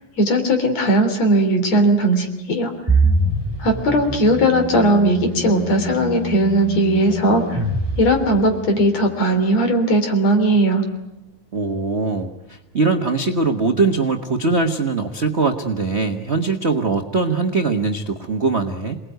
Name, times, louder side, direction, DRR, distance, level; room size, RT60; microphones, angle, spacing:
voice 1, 0.2-2.7 3.6-7.6 8.0-10.8, right 1 dB, 60° left, 6 dB, 4.5 m, -18 dB
sound 1, 2.9-8.8, right 2 dB, 10° right, 2.1 m, -24 dB
voice 2, 11.5-19.0, right 3 dB, 55° right, 4 dB, 0.7 m, -21 dB
27.5 x 20.0 x 9.3 m, 0.95 s
omnidirectional pair, 3.4 m